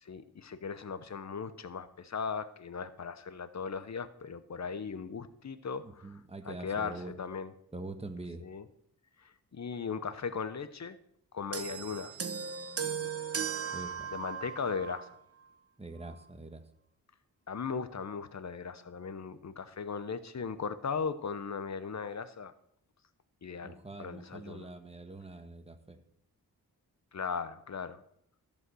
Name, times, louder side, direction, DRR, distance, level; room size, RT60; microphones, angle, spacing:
voice 1, 0.0-6.1 6.4-7.5 8.4-8.6 9.2-11.0 11.3-12.2 14.1-15.1 17.5-22.5 23.4-24.7 27.1-28.0, left 5 dB, 45° left, 13 dB, 0.9 m, -38 dB
voice 2, 5.8-7.1 7.7-8.4 11.7-11.8 13.7-14.1 15.8-16.6 23.6-26.0, right 2 dB, 15° right, 7 dB, 1.3 m, -44 dB
sound 1, 11.5-15.1 16.0-16.2, right 7 dB, 40° right, 0.9 m, -37 dB
14.0 x 5.4 x 6.2 m, 0.72 s
cardioid pair, 65°, 38 cm